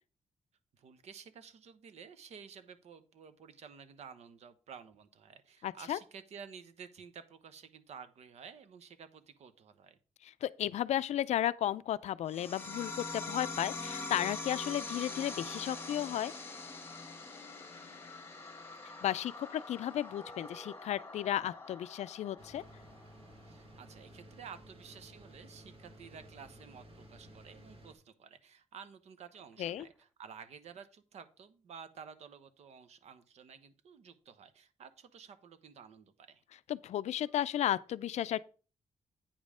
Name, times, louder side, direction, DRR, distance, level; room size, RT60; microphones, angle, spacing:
voice 1, 0.8-10.0 23.5-36.4, right 6 dB, 65° right, 0.9 m, -52 dB
voice 2, 5.6-6.0 10.2-16.3 19.0-22.6 29.6-29.9 36.7-38.4, left 11 dB, 70° left, 0.4 m, -34 dB
sound 1, 12.3-23.3, left 3 dB, 20° left, 1.3 m, -44 dB
Telephone, 20.2-20.9 21.4-21.5 23.3-23.4 23.8-24.0 29.3-30.1 37.2-37.4, right 2 dB, ahead, 0.7 m, -58 dB
sound 2, 22.4-27.9, right 1 dB, 45° right, 1.9 m, -55 dB
8.8 x 5.3 x 4.9 m
wide cardioid pair, 160°, 12 cm